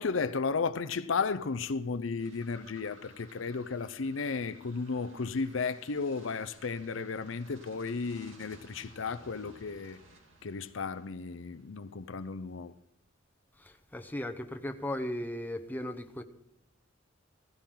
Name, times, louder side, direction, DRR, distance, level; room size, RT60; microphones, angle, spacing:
voice 1, 0.0-10.0 10.4-12.7, left 4 dB, 80° left, 0.6 m, -34 dB
sound 1, 2.2-11.7, right 2 dB, 90° right, 2.8 m, -57 dB
voice 2, 13.6-16.2, left 1 dB, 10° left, 0.9 m, -37 dB
16.0 x 16.0 x 3.8 m
head